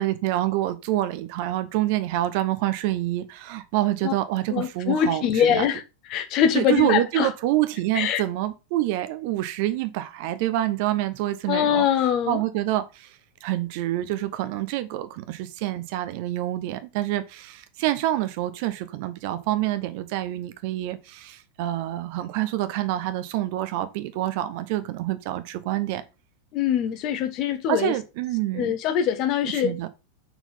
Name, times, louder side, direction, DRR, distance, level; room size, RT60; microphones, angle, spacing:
voice 1, 0.0-5.7 6.5-26.0 27.7-28.7 29.5-29.9, right 14 dB, 45° right, 0.8 m, -27 dB
voice 2, 4.5-5.8 6.1-7.3 7.9-8.2 11.5-12.4 26.5-27.9 28.5-29.9, left 9 dB, 40° left, 1.1 m, -23 dB
5.9 x 4.5 x 5.5 m
figure-of-eight pair, 90°, 0 cm